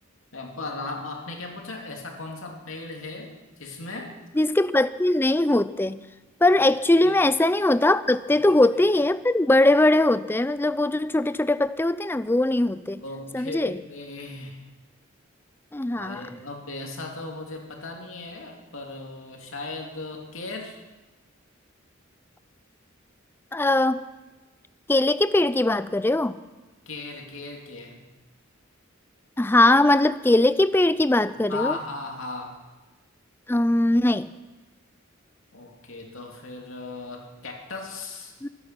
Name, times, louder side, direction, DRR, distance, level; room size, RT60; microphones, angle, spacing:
voice 1, 0.3-4.2 7.0-7.2 8.3-8.4 13.0-14.6 16.0-20.8 26.9-28.1 31.3-32.6 35.5-38.3, left 3 dB, 75° left, 1 dB, 2.7 m, -37 dB
voice 2, 4.4-6.0 6.4-13.0 13.3-13.8 15.7-16.2 23.5-24.0 24.9-26.4 29.4-31.7 33.5-34.3 38.4-38.5, left 1 dB, 10° left, 15 dB, 0.4 m, -21 dB
23.5 x 9.7 x 6.0 m, 1.2 s
head